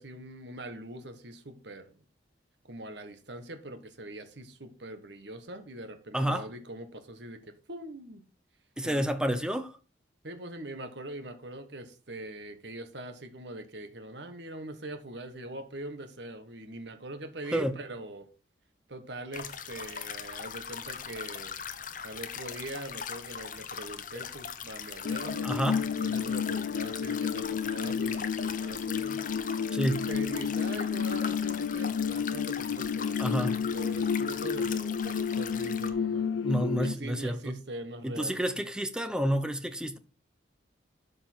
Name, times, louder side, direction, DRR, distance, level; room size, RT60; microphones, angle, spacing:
voice 1, 0.0-2.0 2.6-8.2 8.8-9.1 10.2-18.3 18.9-21.6 22.0-29.2 29.9-36.3 36.8-38.4, right 1 dB, 65° right, 1.3 m, -42 dB
voice 2, 6.1-6.5 8.8-9.8 17.5-17.8 25.4-25.8 29.7-30.1 33.2-33.6 36.4-37.6 38.0-40.0, right 1 dB, 5° right, 0.7 m, -29 dB
sound 1, 19.3-35.9, left 7 dB, 45° left, 0.9 m, -40 dB
sound 2, 25.0-36.9, left 6 dB, 80° left, 0.4 m, -31 dB
12.0 x 5.4 x 4.4 m
head